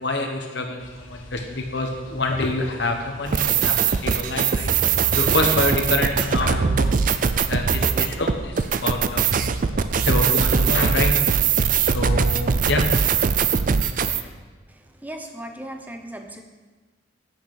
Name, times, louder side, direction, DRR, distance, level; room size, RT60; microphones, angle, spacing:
voice 1, 0.0-4.7 5.2-6.9 7.5-9.3 9.7-11.1 11.9-12.8 14.1-14.2, left 2 dB, 60° left, 3 dB, 1.3 m, -26 dB
sound 1, 0.8-12.5, left 1 dB, 90° left, 1.6 m, -44 dB
sound 2, 3.3-14.2, right 6 dB, 40° right, 0.4 m, -21 dB
voice 2, 14.7-16.4, right 1 dB, 10° right, 5 dB, 0.7 m, -37 dB
8.3 x 6.5 x 6.6 m, 1.3 s
head